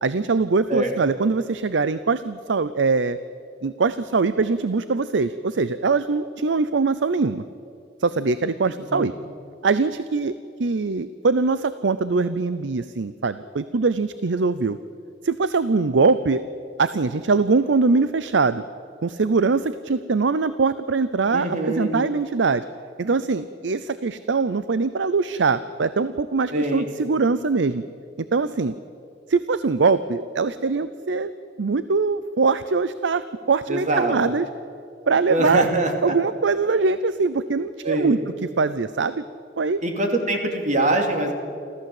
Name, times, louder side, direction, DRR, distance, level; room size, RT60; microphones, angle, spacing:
voice 1, 0.0-3.2 3.6-7.4 8.0-9.1 9.6-10.3 10.6-14.8 15.2-16.4 16.8-18.6 19.0-22.6 23.0-27.8 28.2-28.7 29.3-31.3 31.6-34.5 35.1-35.7 36.0-38.2 38.6-39.2 39.6-39.8, right 4 dB, 75° right, 14 dB, 0.6 m, -22 dB
voice 2, 8.8-9.1 21.3-22.0 26.5-26.9 33.7-34.1 35.3-36.2 37.8-38.2 39.8-41.3, right 1 dB, 45° right, 3 dB, 2.8 m, -23 dB
28.0 x 14.5 x 7.8 m, 2.5 s
head